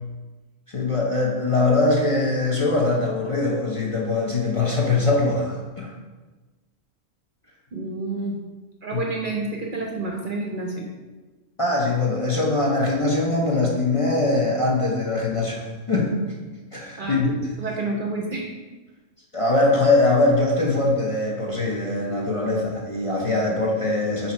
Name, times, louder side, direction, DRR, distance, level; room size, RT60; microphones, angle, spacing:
voice 1, 0.7-5.9 8.9-9.0 11.6-17.3 19.3-24.3, left 2 dB, 30° left, -3 dB, 0.8 m, -22 dB
voice 2, 7.7-8.4 8.8-10.9 17.0-17.2 17.6-18.5, right 2 dB, 50° right, 1 dB, 0.7 m, -29 dB
7.8 x 3.0 x 4.4 m, 1.2 s
omnidirectional pair, 1.3 m